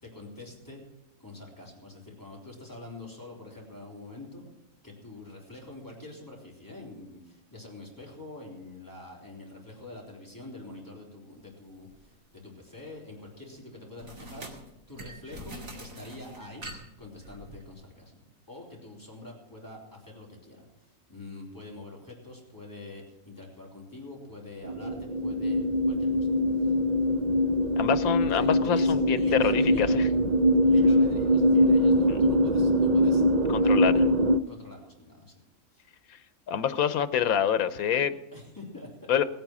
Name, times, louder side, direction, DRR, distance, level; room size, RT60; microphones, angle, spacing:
voice 1, 0.0-0.8 1.2-4.5 4.8-15.5 15.8-16.7 17.0-26.8 28.2-30.1 30.6-33.2 33.6-34.0 34.5-35.4 35.7-35.9 38.3-39.1, left 2 dB, 15° left, -3 dB, 3.5 m, -45 dB
sound 1, 11.9-12.1 14.0-17.7, right 1 dB, 75° right, 2.8 m, -44 dB
sound 2, 24.6-34.4, equal, 50° right, 0.5 m, -23 dB
voice 2, 27.8-30.0 32.1-32.2 33.5-33.9 36.5-38.1 39.1-39.2, left 8 dB, 90° left, 13 dB, 1.3 m, -26 dB
19.0 x 9.1 x 6.1 m, 0.91 s
omnidirectional pair, 1.4 m